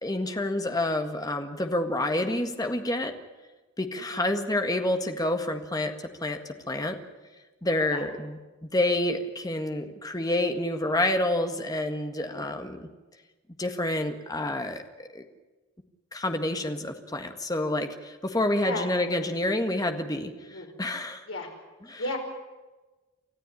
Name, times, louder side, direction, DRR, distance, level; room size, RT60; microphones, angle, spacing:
voice 1, 0.0-3.1 3.8-5.9 6.2-7.0 7.6-12.9 13.6-15.3 16.1-21.2 21.9-22.0, left 1 dB, 20° left, 6 dB, 1.8 m, -28 dB
voice 2, 4.0-4.3 7.9-8.0 12.3-12.5 18.6-18.9 20.5-20.7 21.3-21.5 22.0-22.2, left 2 dB, 70° left, 2 dB, 5.1 m, -34 dB
29.0 x 14.0 x 9.9 m, 1.2 s
head